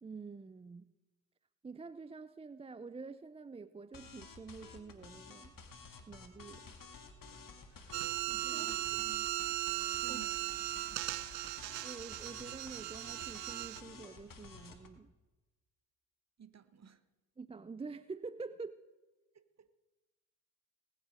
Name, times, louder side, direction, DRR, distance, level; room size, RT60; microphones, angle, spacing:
voice 1, 0.0-0.9 1.6-5.6 6.1-6.6 8.5-8.7 10.1-10.2 11.8-15.1 17.4-18.8, right 4 dB, 15° right, 0.4 m, -47 dB
sound 1, 3.9-14.9, left 4 dB, 40° left, 2.1 m, -53 dB
voice 2, 7.7-9.3 9.9-11.2 16.4-17.0 19.3-19.8, right 7 dB, 35° right, 1.2 m, -56 dB
sound 2, 7.9-13.8, right 19 dB, 80° right, 0.7 m, -38 dB
19.5 x 8.9 x 5.1 m
hypercardioid pair, 55°, 48 cm